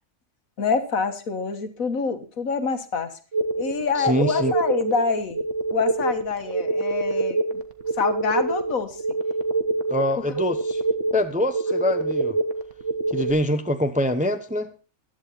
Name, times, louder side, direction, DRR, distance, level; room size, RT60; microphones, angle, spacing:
voice 1, 0.6-3.1 3.6-5.4 5.7-7.6 8.0-9.0, left 5 dB, 70° left, 9 dB, 1.8 m, -26 dB
sound 1, 3.3-13.3, right 3 dB, 55° right, 1.6 m, -26 dB
voice 2, 4.0-4.5 9.9-10.8 11.1-12.4 13.1-14.7, left 1 dB, 5° right, 8 dB, 0.6 m, -24 dB
15.0 x 11.5 x 4.1 m, 0.34 s
omnidirectional pair, 1.5 m